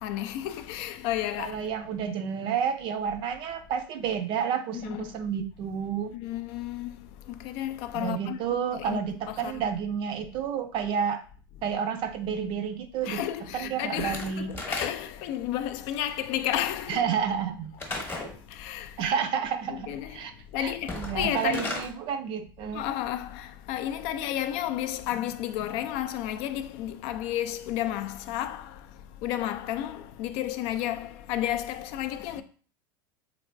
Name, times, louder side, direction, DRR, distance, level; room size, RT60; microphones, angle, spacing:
voice 1, 0.0-1.6 4.7-5.1 6.1-7.0 7.4-9.0 9.3-9.6 13.0-17.0 17.9-18.0 18.5-19.0 19.7-20.2 20.5-21.7 22.7-28.8 29.2-32.4, left 12 dB, 55° left, 0.4 m, -32 dB
voice 2, 1.4-6.1 7.9-11.2 11.6-14.6 16.9-17.7 19.0-20.3 20.6-22.8, right 7 dB, 45° right, 0.4 m, -30 dB
Slam / Wood, 14.0-15.3 17.8-18.4 20.8-21.9, left 2 dB, 20° left, 0.9 m, -35 dB
3.2 x 3.0 x 2.5 m
hypercardioid pair, 105°, 12 cm